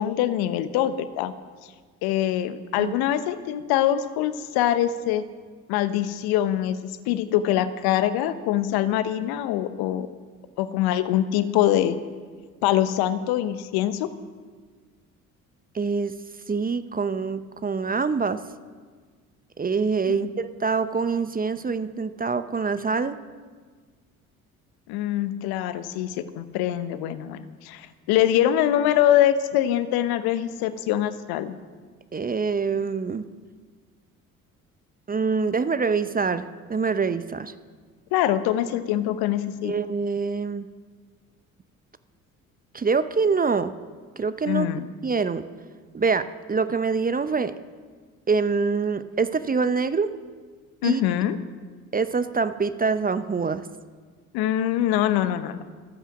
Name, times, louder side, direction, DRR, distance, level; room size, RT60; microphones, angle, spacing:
voice 1, 0.0-1.3 2.0-5.2 5.7-6.8 7.1-10.1 10.6-12.0 12.6-14.1 20.1-20.3 24.9-31.6 38.1-39.7 44.5-44.9 50.8-51.4 54.3-55.6, left 12 dB, 60° left, 12 dB, 1.1 m, -24 dB
voice 2, 15.7-16.2 16.5-18.4 19.6-23.2 32.1-33.2 35.1-37.5 39.6-40.7 42.7-43.7 44.2-44.7 45.0-45.4 45.9-47.5 48.3-50.1 50.8-51.0 51.9-53.7, right 5 dB, 20° right, 12 dB, 0.9 m, -25 dB
25.0 x 9.4 x 6.1 m, 1.5 s
figure-of-eight pair, 55°, 42 cm